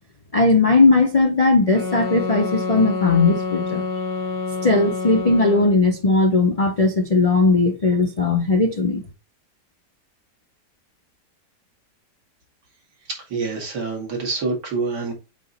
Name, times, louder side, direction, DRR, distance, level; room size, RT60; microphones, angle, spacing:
voice 1, 0.3-3.8 4.6-9.0, left 3 dB, 45° left, 0.4 m, -18 dB
sound 1, 1.7-5.9, left 3 dB, 75° left, 2.1 m, -27 dB
voice 2, 13.1-15.1, right 4 dB, 80° right, 2.5 m, -26 dB
8.1 x 2.9 x 4.0 m
omnidirectional pair, 1.8 m